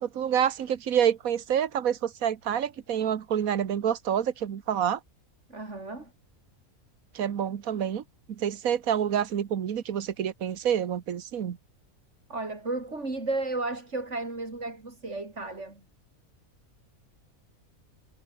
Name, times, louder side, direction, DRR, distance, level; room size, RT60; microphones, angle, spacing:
voice 1, 0.0-5.0 7.1-8.0 8.3-11.6, right 9 dB, 75° right, 1.6 m, -27 dB
voice 2, 5.5-6.1 12.3-15.8, right 2 dB, 55° right, 4.4 m, -33 dB
omnidirectional pair, 1.5 m